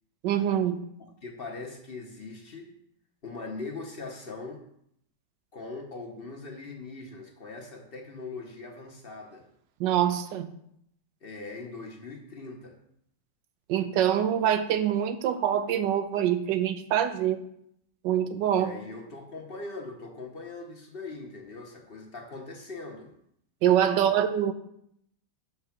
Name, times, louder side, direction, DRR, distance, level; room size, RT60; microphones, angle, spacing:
voice 1, 0.2-0.8 9.8-10.5 13.7-17.4 18.0-18.7 23.6-24.5, right 10 dB, 90° right, 9 dB, 1.3 m, -25 dB
voice 2, 1.2-2.7 3.2-4.6 5.5-9.5 11.2-12.8 18.6-23.1 23.9-24.2, left 3 dB, 40° left, 1 dB, 0.9 m, -41 dB
6.4 x 4.6 x 5.8 m, 0.72 s
omnidirectional pair, 1.9 m